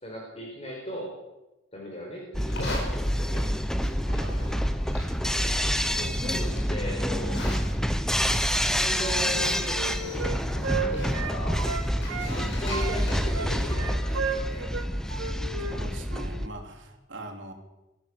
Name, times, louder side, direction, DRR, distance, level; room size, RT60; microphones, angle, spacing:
voice 1, 0.0-1.1 1.7-3.5 6.0-7.4 8.7-11.6 12.3-14.7, equal, 30° left, -2 dB, 4.7 m, -37 dB
sound 1, 2.3-16.5, equal, 5° left, 1.0 m, -28 dB
Livestock farm animals working animals, 2.4-14.6, left 2 dB, 55° left, 6.1 m, -42 dB
voice 2, 4.0-5.0 12.2-12.6 15.6-17.5, right 1 dB, 60° right, 1 dB, 3.8 m, -42 dB
Wind instrument woodwind instrument, 8.9-12.3 12.7-15.8 16.1-16.3, right 5 dB, 85° right, 2.5 m, -33 dB
22.0 x 15.0 x 7.9 m, 1.0 s
head